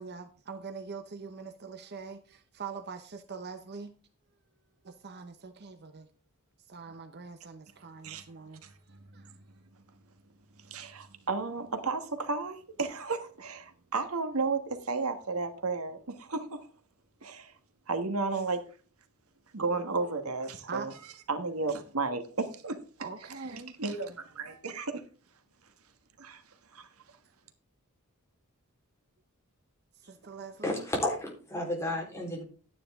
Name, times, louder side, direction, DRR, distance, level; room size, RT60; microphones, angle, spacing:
voice 1, 0.0-3.9 4.8-6.1 6.7-8.6 9.1-9.2 19.7-20.0 20.7-20.9 23.0-23.7 30.1-30.9, right 5 dB, 50° right, 0.8 m, -43 dB
voice 2, 10.7-16.7 17.2-17.5 17.9-18.6 19.5-20.9 21.3-22.8 23.3-25.0 26.2-26.4 26.7-26.9, right 4 dB, 75° right, 1.5 m, -33 dB
voice 3, 30.6-32.4, left 1 dB, 15° left, 3.8 m, -32 dB
12.0 x 9.7 x 3.6 m
head